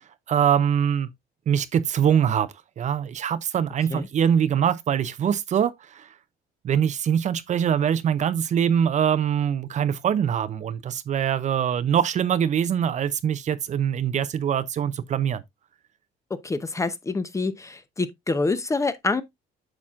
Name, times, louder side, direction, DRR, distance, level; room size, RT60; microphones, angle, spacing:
voice 1, 0.3-1.1 1.5-6.1 6.6-15.4, right 8 dB, 45° right, 0.6 m, -23 dB
voice 2, 16.4-19.2, left 3 dB, 15° left, 0.7 m, -26 dB
8.7 x 5.9 x 2.4 m
cardioid pair, 110°, 17 cm